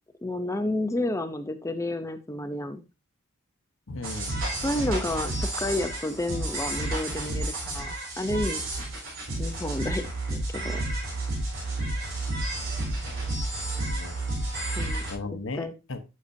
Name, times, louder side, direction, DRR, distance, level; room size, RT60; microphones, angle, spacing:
voice 1, 0.2-2.8 4.6-8.6 9.4-10.8 14.8-15.0 15.5-15.7, left 1 dB, 15° left, 9 dB, 0.5 m, -30 dB
voice 2, 3.9-4.5 13.9-14.2 14.4-16.0, left 3 dB, 60° left, 9 dB, 1.0 m, -37 dB
sound 1, 4.0-15.1, right 2 dB, 70° right, 4.0 m, -31 dB
10.0 x 6.5 x 2.7 m, 0.27 s
head